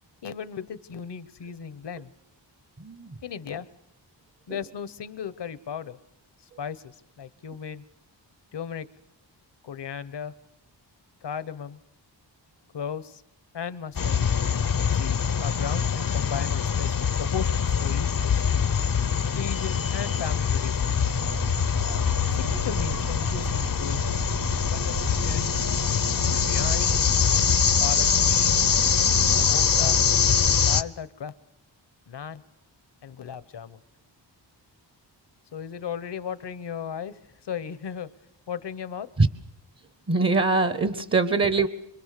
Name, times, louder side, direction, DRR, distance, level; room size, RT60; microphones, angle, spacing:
voice 1, 0.2-2.1 3.2-3.7 4.5-6.0 6.6-6.8 7.2-7.8 8.5-8.9 9.6-10.3 11.2-11.8 12.7-13.2 13.5-14.2 15.0-18.5 19.3-20.8 22.3-24.0 24.7-25.6 26.3-27.1 27.8-28.6 29.4-30.0 30.6-31.3 32.1-32.4 33.0-33.8 35.5-38.1 38.5-39.1, left 7 dB, 65° left, 15 dB, 1.1 m, -36 dB
voice 2, 2.8-3.2 4.5-4.6 39.2-39.3 40.1-41.7, right 3 dB, 30° right, 13 dB, 1.0 m, -23 dB
sound 1, 13.9-30.8, left 7 dB, 50° left, 0.8 m, -23 dB
sound 2, 20.9-29.5, right 5 dB, 85° right, 6.1 m, -36 dB
25.5 x 23.0 x 6.7 m, 0.80 s
wide cardioid pair, 80°, 44 cm